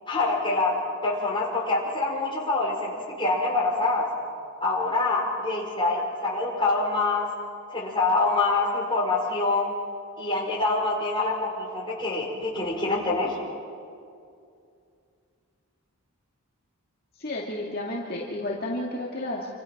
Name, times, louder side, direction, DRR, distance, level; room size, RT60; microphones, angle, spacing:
voice 1, 0.1-0.7 1.0-2.9 3.2-4.0 4.6-7.3 7.7-9.7 10.2-13.4, left 3 dB, 20° left, -2 dB, 5.0 m, -25 dB
voice 2, 17.2-19.5, left 1 dB, 45° left, -3 dB, 2.3 m, -31 dB
28.0 x 26.5 x 6.0 m, 2.4 s
head